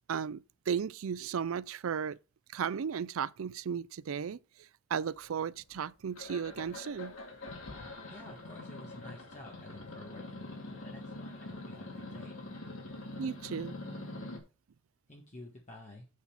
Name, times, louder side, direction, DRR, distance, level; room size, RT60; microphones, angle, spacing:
voice 1, 0.1-2.2 2.5-7.1 13.2-13.8, right 7 dB, 90° right, 0.4 m, -35 dB
sound 1, 5.3-5.8 6.2-14.4, left 2 dB, 85° left, 2.4 m, -44 dB
voice 2, 8.1-12.3 15.1-16.1, left 1 dB, 35° left, 1.5 m, -51 dB
8.3 x 4.1 x 7.0 m
head